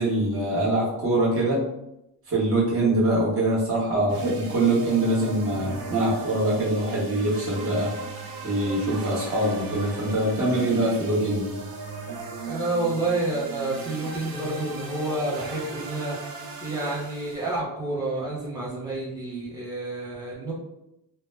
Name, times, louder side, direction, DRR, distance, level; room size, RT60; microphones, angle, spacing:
voice 1, 0.0-1.6 2.3-7.9 8.4-11.5, right 1 dB, 35° right, -6 dB, 0.9 m, -24 dB
sound 1, 4.1-17.6, right 3 dB, 65° right, 0.5 m, -37 dB
voice 2, 12.5-20.5, right 2 dB, 10° right, -6 dB, 0.6 m, -29 dB
2.1 x 2.0 x 3.2 m, 0.85 s
cardioid pair, 175°, 39 cm